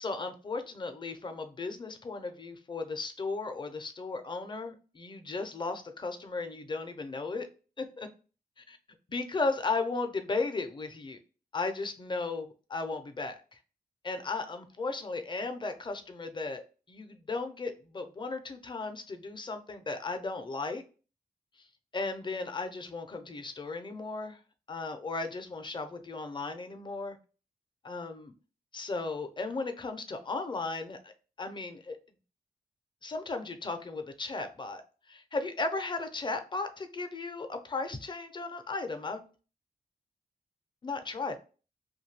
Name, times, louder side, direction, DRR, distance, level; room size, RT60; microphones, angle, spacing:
voice 1, 0.0-7.5 7.8-8.1 8.6-8.8 9.1-11.2 11.5-13.6 14.0-16.6 16.9-20.8 21.6-21.7 21.9-24.4 24.7-27.2 27.8-28.3 28.7-31.1 31.4-32.0 33.0-34.8 35.1-39.3 40.8-41.4, left 3 dB, 30° left, 7 dB, 0.5 m, -35 dB
2.6 x 2.2 x 3.2 m, 0.35 s
wide cardioid pair, 90°, 16 cm